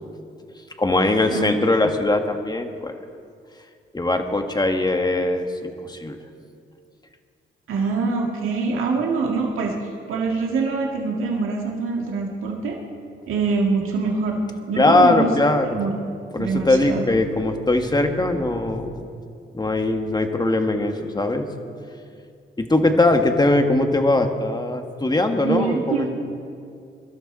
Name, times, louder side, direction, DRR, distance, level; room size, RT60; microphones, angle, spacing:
voice 1, 0.8-2.9 3.9-6.2 14.8-15.8 16.3-19.0 19.5-21.5 22.6-26.1, left 2 dB, 20° left, 5 dB, 1.6 m, -20 dB
voice 2, 7.7-9.8 10.1-12.8 13.3-14.4 14.7-15.3 15.6-16.0 16.4-17.0 25.4-26.1, right 4 dB, 80° right, 0 dB, 1.8 m, -24 dB
23.0 x 12.0 x 4.2 m, 2.3 s
supercardioid pair, 55°, 21 cm